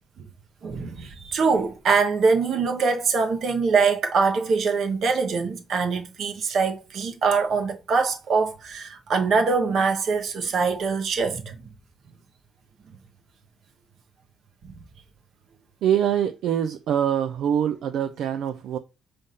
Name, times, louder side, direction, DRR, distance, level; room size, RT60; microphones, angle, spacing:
voice 1, 0.6-11.6, right 4 dB, 55° right, 1.2 m, -23 dB
voice 2, 15.8-18.8, right 9 dB, 75° right, 0.5 m, -24 dB
5.5 x 3.5 x 5.4 m
cardioid pair, 115°, 0 cm